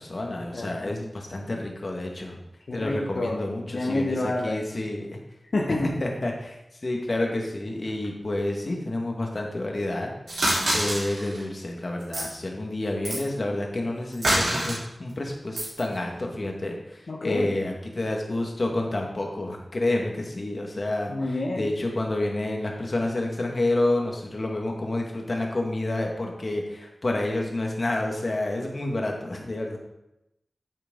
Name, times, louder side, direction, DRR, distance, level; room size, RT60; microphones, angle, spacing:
voice 1, 0.0-2.4 2.7-5.2 6.0-6.6 6.8-10.1 10.7-21.1 21.6-29.8, left 2 dB, 50° left, 1 dB, 1.8 m, -29 dB
voice 2, 0.5-1.0 2.7-3.4 3.7-4.6 5.5-5.9 17.1-17.5 21.1-21.7, left 2 dB, 75° left, -2 dB, 1.2 m, -28 dB
sound 1, 10.3-11.4 12.0-12.3 13.0-13.2 14.1-14.8 15.6-15.8, right 1 dB, 85° right, 4.0 m, -25 dB
9.3 x 8.1 x 3.9 m, 0.88 s
wide cardioid pair, 85°, 0 cm